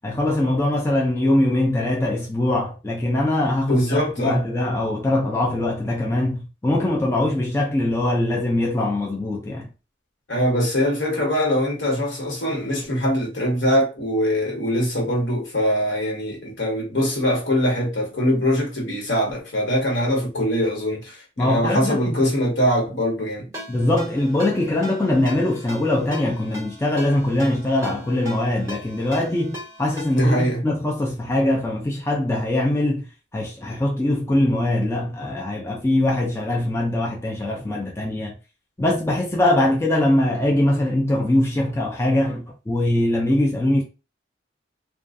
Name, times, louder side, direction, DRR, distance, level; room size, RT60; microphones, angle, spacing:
voice 1, 0.0-9.7 21.4-22.2 23.7-33.0 33.3-38.3 38.8-43.8, left 1 dB, 15° left, 0.3 m, -22 dB
voice 2, 3.7-4.4 10.3-23.5 30.1-30.6, equal, 75° left, 1.1 m, -22 dB
Ringtone, 23.5-30.4, left 1 dB, 15° right, 1.2 m, -39 dB
2.4 x 2.3 x 2.5 m
head